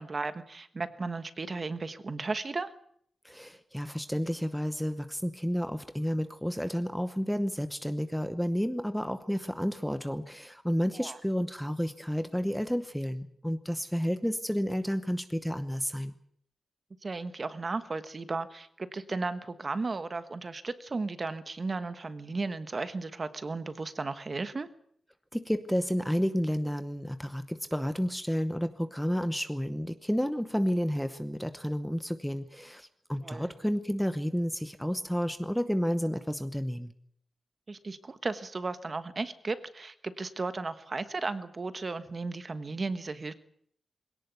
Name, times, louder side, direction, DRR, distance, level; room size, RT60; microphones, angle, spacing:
voice 1, 0.0-2.7 10.9-11.2 17.0-24.7 33.2-33.5 37.7-43.3, right 3 dB, 30° right, 11 dB, 1.3 m, -35 dB
voice 2, 3.2-16.2 25.3-36.9, equal, ahead, 10 dB, 0.9 m, -31 dB
22.0 x 18.0 x 8.2 m, 0.66 s
wide cardioid pair, 160°, 0 cm